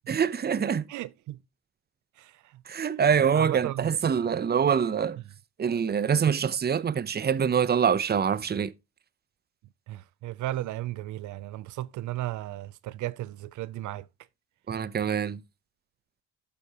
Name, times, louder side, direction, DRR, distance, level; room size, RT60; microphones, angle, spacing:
voice 1, 0.1-0.8 2.7-5.2 5.6-8.7 14.7-15.4, right 7 dB, 35° right, 0.8 m, -25 dB
voice 2, 0.9-1.4 2.2-2.5 3.3-3.9 9.9-14.1, right 15 dB, 75° right, 0.5 m, -35 dB
11.5 x 8.4 x 3.0 m
cardioid pair, 90°, 30 cm